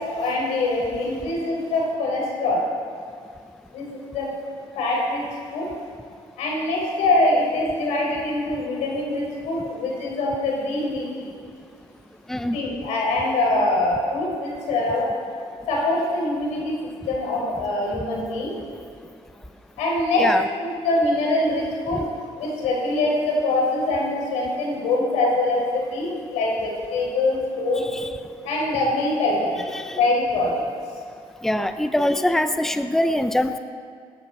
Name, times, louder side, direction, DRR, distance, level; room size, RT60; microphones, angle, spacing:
voice 1, 0.0-2.6 3.7-4.3 4.8-5.3 5.5-5.7 6.4-11.3 12.5-15.1 15.7-18.6 19.8-20.3 20.6-22.1 22.3-27.8 28.4-29.6 30.0-30.6, left 2 dB, 85° left, -2 dB, 4.4 m, -24 dB
voice 2, 12.3-12.9 20.2-20.4 21.9-22.0 27.8-28.1 29.7-30.0 31.4-33.6, left 1 dB, 5° left, 9 dB, 0.7 m, -23 dB
19.0 x 11.5 x 4.3 m, 2.2 s
cardioid pair, 80°, 12 cm